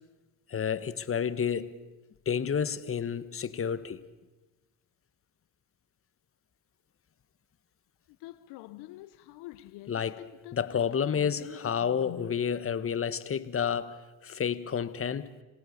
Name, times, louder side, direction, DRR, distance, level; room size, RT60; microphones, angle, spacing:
voice 1, 0.5-1.7 2.2-4.0 9.9-10.2 10.5-15.3, left 7 dB, 30° left, 1.4 m, -30 dB
voice 2, 8.1-12.3, left 17 dB, 70° left, 0.9 m, -47 dB
27.5 x 17.5 x 6.6 m
supercardioid pair, 80°, 42 cm